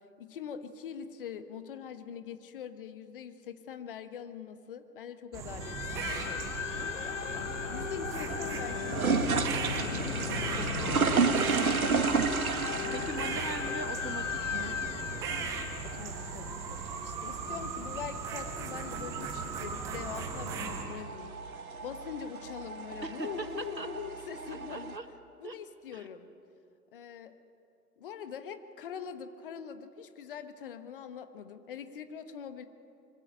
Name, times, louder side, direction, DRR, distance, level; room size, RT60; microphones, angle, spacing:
voice 1, 0.0-6.5 7.7-10.0 10.5-10.8 12.8-13.2 15.8-21.4 21.8-25.0 25.4-26.3 26.9-27.3 28.0-32.6, left 7 dB, 35° left, 10 dB, 1.3 m, -43 dB
sound 1, 5.3-20.8, right 5 dB, 5° right, 0.7 m, -38 dB
sound 2, 5.6-16.8, left 8 dB, 50° left, 0.6 m, -37 dB
sound 3, 6.8-25.0, right 5 dB, 60° right, 1.9 m, -34 dB
voice 2, 10.6-11.5 12.9-14.8 23.0-23.9 24.5-25.1 25.4-25.6 25.9-26.1, right 2 dB, 85° right, 10 dB, 1.8 m, -40 dB
24.0 x 16.0 x 9.1 m, 2.6 s
figure-of-eight pair, 125°, 49 cm